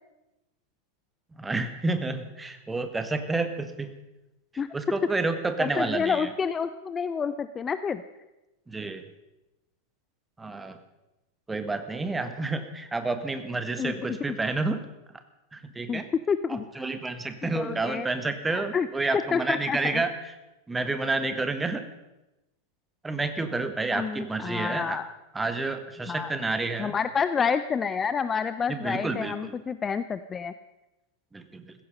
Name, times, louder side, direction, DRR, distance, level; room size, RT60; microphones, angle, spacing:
voice 1, 1.4-4.0 4.7-6.3 8.7-9.0 10.4-10.8 11.5-14.8 15.5-16.1 16.5-20.1 20.7-21.8 23.0-25.0 25.3-27.0 28.7-29.5 31.3-31.7, right 3 dB, 10° right, 9 dB, 1.5 m, -29 dB
voice 2, 5.6-8.0 13.8-14.2 15.9-16.8 17.5-18.1 18.5-18.9 19.3-20.0 23.9-25.1 26.1-26.3 26.8-30.5, left 6 dB, 20° left, 13 dB, 0.5 m, -29 dB
15.5 x 15.5 x 5.4 m, 0.99 s
figure-of-eight pair, 90°, 0 cm